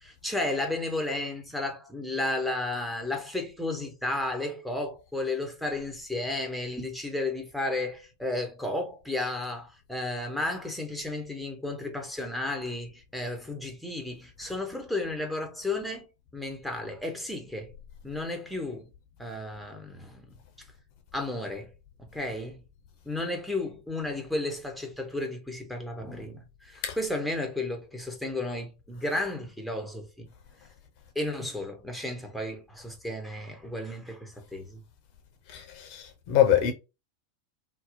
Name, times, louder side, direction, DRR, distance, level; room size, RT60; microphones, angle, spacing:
voice 1, 0.0-16.0 16.3-17.7 18.0-18.9 19.2-20.3 21.1-21.7 22.1-22.6 23.1-30.3 31.1-34.8, left 2 dB, ahead, 0.7 m, -33 dB
voice 2, 35.5-36.7, left 10 dB, 45° left, 0.6 m, -24 dB
2.7 x 2.1 x 2.6 m
figure-of-eight pair, 85°, 0 cm